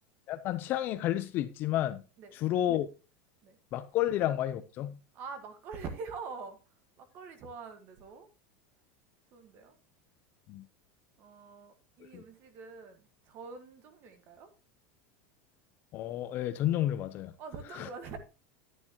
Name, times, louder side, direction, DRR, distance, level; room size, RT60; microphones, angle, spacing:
voice 1, 0.3-2.0 2.3-2.9 3.7-5.0 10.5-10.6 12.1-12.2 15.9-17.3 17.7-17.9, left 12 dB, 30° left, 0.6 m, -31 dB
voice 2, 5.1-6.6 7.0-8.3 9.3-9.7 11.2-14.5 17.4-18.2, right 5 dB, 30° right, 1.5 m, -44 dB
11.5 x 9.9 x 2.9 m
supercardioid pair, 175°, 7 cm